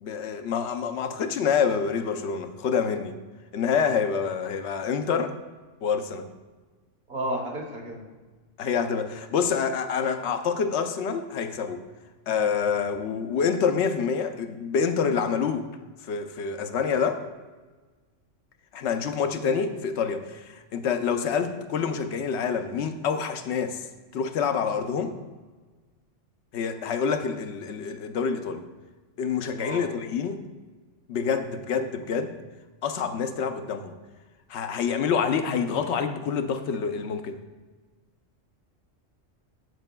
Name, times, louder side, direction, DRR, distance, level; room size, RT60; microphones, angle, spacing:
voice 1, 0.0-3.2 3.5-5.3 5.8-6.3 8.6-11.8 12.3-15.7 16.0-17.2 18.7-23.8 24.1-25.2 26.5-28.6 29.2-30.4 31.1-32.3 32.8-33.9 34.5-37.4, left 6 dB, 65° left, 8 dB, 0.8 m, -27 dB
voice 2, 7.1-8.1 29.6-30.0, right 1 dB, 40° right, -1 dB, 1.1 m, -32 dB
13.0 x 4.8 x 2.2 m, 1.3 s
omnidirectional pair, 1.3 m